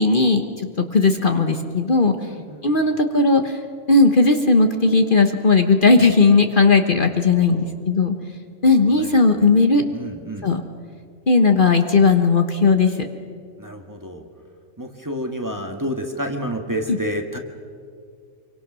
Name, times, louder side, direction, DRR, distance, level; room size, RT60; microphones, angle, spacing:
voice 1, 0.0-2.1 2.6-3.6 3.9-8.1 8.6-9.8 10.4-10.6 11.3-13.1 16.9-17.0, left 3 dB, 45° left, 6 dB, 1.3 m, -17 dB
voice 2, 2.2-2.6 7.3-7.7 8.8-9.6 9.9-10.5 13.6-14.3 14.8-17.4, equal, 15° right, 3 dB, 1.7 m, -30 dB
26.0 x 24.0 x 6.2 m, 2.1 s
omnidirectional pair, 1.3 m